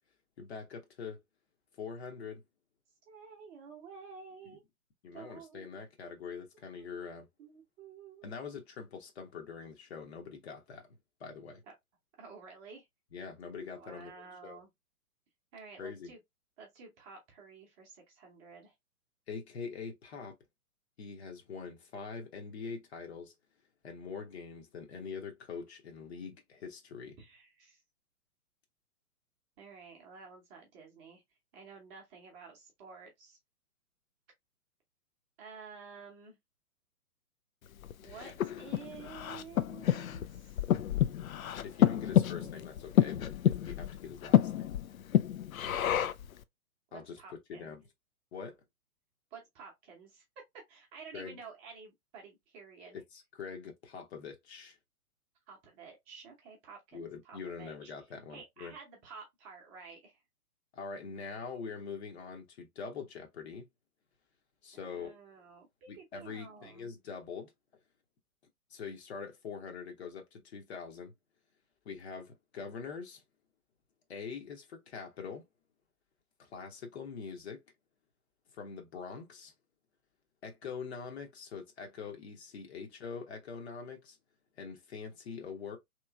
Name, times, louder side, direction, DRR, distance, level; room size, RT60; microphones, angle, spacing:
voice 1, 0.4-1.2 1.8-2.4 4.4-4.6 5.0-7.3 8.2-10.9 11.2-11.6 13.1-14.2 14.4-14.6 15.8-16.1 19.3-20.3 21.0-23.3 23.8-27.2 41.6-42.7 43.0-44.8 46.9-47.2 47.5-47.8 48.3-48.6 51.1-51.4 52.9-54.8 56.9-58.7 60.7-63.7 64.6-65.2 65.9-67.5 68.7-71.1 71.8-73.2 74.1-75.4 76.4-77.6 78.5-79.5 80.4-84.2 84.6-85.8, left 5 dB, 45° left, 0.9 m, -44 dB
voice 2, 3.1-4.6 5.1-5.8 6.8-8.3 11.7-11.8 12.2-12.9 13.7-14.7 15.5-16.2 16.6-18.7 27.2-27.8 29.6-31.2 31.5-33.4 35.4-36.4 38.0-40.6 42.4-42.5 45.7-46.1 46.9-47.7 49.3-50.2 50.5-53.0 55.5-57.9 58.3-60.2 64.7-66.9, right 5 dB, 20° right, 0.8 m, -51 dB
Breathing, 37.8-46.3, left 11 dB, 65° left, 0.5 m, -29 dB
3.0 x 3.0 x 2.3 m
figure-of-eight pair, 125°, 44 cm